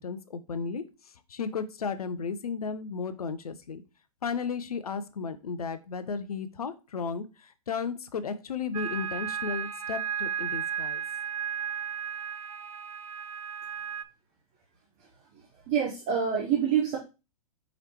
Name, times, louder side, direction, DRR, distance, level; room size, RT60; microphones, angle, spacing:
voice 1, 0.0-3.8 4.2-11.0, left 5 dB, 80° left, 12 dB, 0.5 m, -34 dB
sound 1, 8.7-14.0, right 8 dB, 75° right, 0.4 m, -34 dB
voice 2, 15.3-17.0, right 8 dB, 35° right, -1 dB, 0.9 m, -27 dB
4.9 x 3.2 x 2.9 m, 0.29 s
figure-of-eight pair, 110°, 19 cm